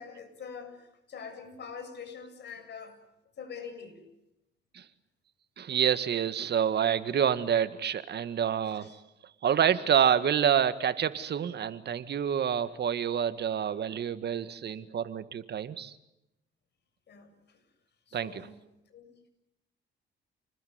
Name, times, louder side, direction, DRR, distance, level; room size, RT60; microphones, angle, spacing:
voice 1, 0.0-3.0 3.4-4.0 8.7-8.9 17.1-17.6 18.1-18.6 18.9-19.1, left 6 dB, 60° left, 7 dB, 7.3 m, -44 dB
voice 2, 5.6-9.0 9.4-15.9 18.1-18.5, right 8 dB, 55° right, 13 dB, 1.8 m, -28 dB
29.0 x 20.5 x 9.5 m, 0.88 s
cardioid pair, 90°, 20 cm